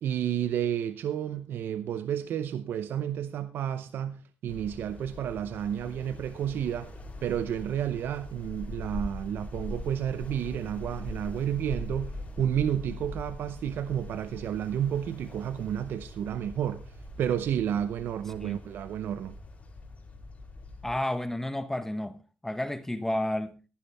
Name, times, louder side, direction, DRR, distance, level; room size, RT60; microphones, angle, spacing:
voice 1, 0.0-6.9 7.2-16.9 17.2-19.3, right 9 dB, 80° right, 0.7 m, -31 dB
sound 1, 4.5-20.9, left 1 dB, 40° left, 4.3 m, -42 dB
voice 2, 20.8-22.2 22.4-23.6, left 1 dB, 10° left, 1.1 m, -31 dB
14.5 x 11.5 x 3.4 m
cardioid pair, 75°, 4 cm